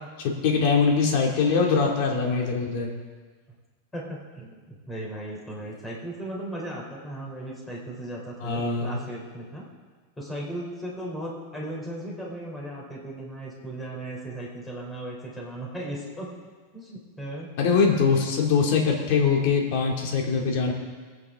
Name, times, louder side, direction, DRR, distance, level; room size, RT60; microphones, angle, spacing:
voice 1, 0.2-2.9 8.4-9.0 17.6-20.7, left 5 dB, 60° left, 0 dB, 2.4 m, -22 dB
voice 2, 3.9-9.7 10.2-16.4 16.7-17.5, right 1 dB, 10° left, -2 dB, 3.3 m, -36 dB
21.5 x 9.0 x 3.7 m, 1.4 s
supercardioid pair, 140°, 0 cm